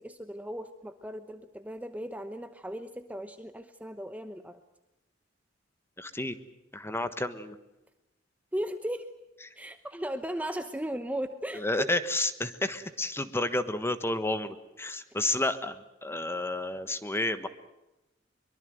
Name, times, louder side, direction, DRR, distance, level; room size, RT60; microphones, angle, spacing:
voice 1, 0.0-4.6 8.5-9.1 9.5-11.9, equal, 10° right, 9 dB, 0.9 m, -36 dB
voice 2, 6.0-6.4 6.7-7.6 11.5-17.5, left 2 dB, 15° left, 11 dB, 1.3 m, -31 dB
24.0 x 23.0 x 7.9 m, 0.96 s
head